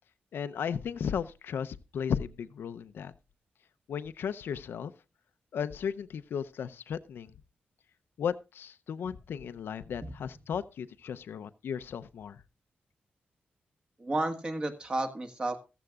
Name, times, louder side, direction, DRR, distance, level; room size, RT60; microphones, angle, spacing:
voice 1, 0.3-3.1 3.9-4.9 5.5-7.3 8.2-12.4, left 7 dB, 85° left, 0.6 m, -35 dB
voice 2, 14.0-15.6, right 2 dB, 25° right, 1.5 m, -32 dB
14.5 x 14.0 x 2.4 m
wide cardioid pair, 160°, 4 cm